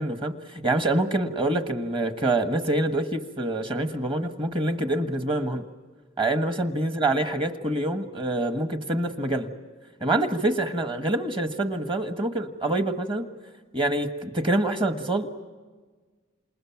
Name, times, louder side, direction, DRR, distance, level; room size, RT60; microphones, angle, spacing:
voice 1, 0.0-5.6 6.2-9.5 10.0-13.2 13.7-15.3, right 1 dB, 25° right, 7 dB, 1.4 m, -26 dB
28.5 x 28.0 x 5.9 m, 1.4 s
head